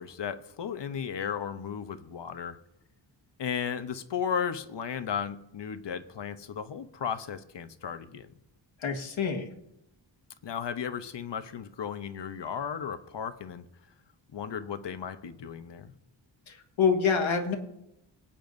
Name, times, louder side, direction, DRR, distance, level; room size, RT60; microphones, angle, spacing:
voice 1, 0.0-2.6 3.4-8.3 10.4-13.6 14.3-15.9, left 7 dB, 65° left, 10 dB, 0.9 m, -35 dB
voice 2, 8.8-9.5 16.5-17.6, left 6 dB, 80° left, 4 dB, 1.7 m, -26 dB
25.5 x 8.7 x 2.6 m, 0.85 s
wide cardioid pair, 105°, 47 cm